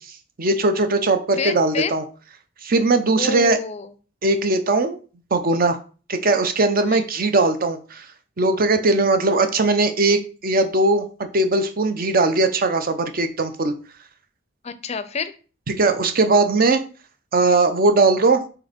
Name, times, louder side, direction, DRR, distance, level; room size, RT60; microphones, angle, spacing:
voice 1, 0.4-2.0 2.6-3.6 4.2-5.0 5.3-5.8 6.1-8.1 8.4-11.1 11.3-13.7 15.7-16.8 17.3-18.4, right 3 dB, 45° right, 9 dB, 0.7 m, -19 dB
voice 2, 1.4-1.9 3.1-3.9 6.9-7.1 14.6-15.4, left 4 dB, 35° left, 12 dB, 0.5 m, -28 dB
4.6 x 4.2 x 5.1 m, 0.38 s
head